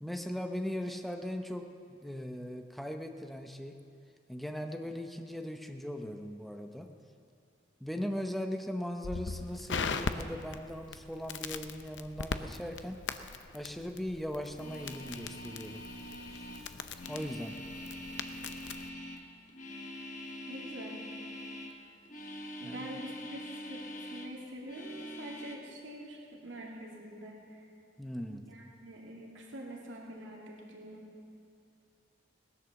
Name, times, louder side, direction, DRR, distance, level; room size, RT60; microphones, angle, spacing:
voice 1, 0.0-3.7 4.3-6.9 7.8-13.0 13.5-15.8 16.3-16.7 17.1-17.6 22.6-22.9 28.0-28.5, equal, ahead, 4 dB, 0.8 m, -39 dB
Crackle, 9.0-18.9, left 4 dB, 75° left, 0.7 m, -40 dB
sound 1, 14.5-21.8 22.0-24.3 24.6-25.6, left 1 dB, 40° left, 1.5 m, -44 dB
voice 2, 20.5-21.0 22.2-27.7 28.3-31.1, right 1 dB, 85° right, -2 dB, 2.5 m, -46 dB
18.5 x 11.0 x 7.1 m, 2.5 s
head